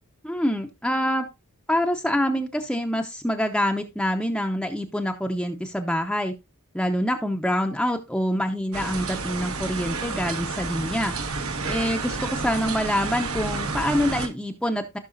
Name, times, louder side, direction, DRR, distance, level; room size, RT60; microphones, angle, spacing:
voice 1, 0.2-1.3 1.7-6.3 6.7-11.1 11.6-15.0, equal, 5° left, 3 dB, 0.8 m, -26 dB
sound 1, 8.7-14.3, right 4 dB, 75° right, 1.7 m, -30 dB
15.5 x 6.1 x 2.5 m, 0.24 s
head